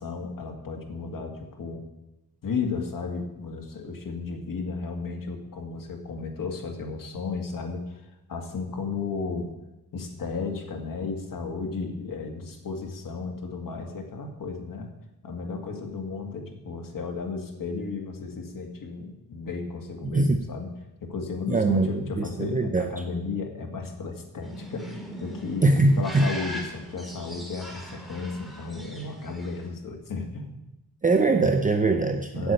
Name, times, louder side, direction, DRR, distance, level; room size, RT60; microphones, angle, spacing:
voice 1, 0.0-1.8 2.4-8.0 8.3-9.5 9.9-14.9 15.2-20.8 21.0-25.6 26.0-30.6 32.3-32.5, left 4 dB, 60° left, 3 dB, 2.1 m, -34 dB
voice 2, 21.5-22.9 25.6-26.3 31.0-32.5, right 3 dB, 20° right, 6 dB, 0.7 m, -22 dB
sound 1, 24.4-29.7, equal, ahead, 2.3 m, -40 dB
8.1 x 7.7 x 8.1 m, 0.93 s
cardioid pair, 100°, 36 cm